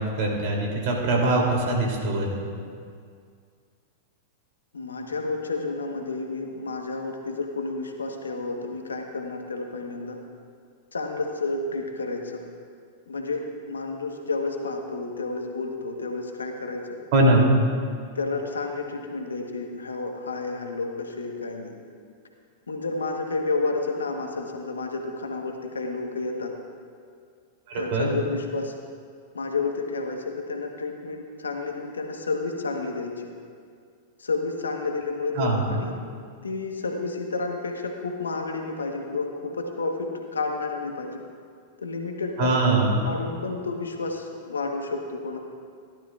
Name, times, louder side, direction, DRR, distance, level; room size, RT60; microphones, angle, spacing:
voice 1, 0.0-2.4 17.1-17.5 27.7-28.1 35.3-35.6 42.4-43.0, right 2 dB, 55° right, -1 dB, 2.9 m, -22 dB
voice 2, 4.7-10.2 10.9-12.4 13.1-16.9 18.1-21.7 22.7-26.5 27.7-28.7 29.3-33.3 34.2-35.9 36.4-41.2 41.8-45.4, left 3 dB, 85° left, 3 dB, 1.2 m, -30 dB
15.5 x 12.0 x 2.5 m, 2.2 s
hypercardioid pair, 100°, 0 cm